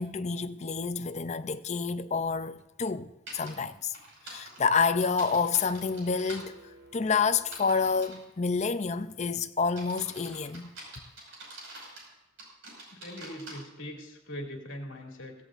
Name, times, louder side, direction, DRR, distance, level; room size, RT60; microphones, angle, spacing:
voice 1, 0.0-4.0 4.2-6.6 6.9-10.7, left 5 dB, 30° left, 0.5 m, -28 dB
sound 1, 3.3-3.5 3.9-6.4 7.4-8.2 8.8-9.1 9.7-12.1 12.4-13.5, right 2 dB, 60° right, 5.5 m, -46 dB
sound 2, 5.3-8.3, right 2 dB, 85° right, 2.7 m, -55 dB
voice 2, 12.9-15.3, equal, 65° left, 2.5 m, -41 dB
16.5 x 16.0 x 2.5 m
head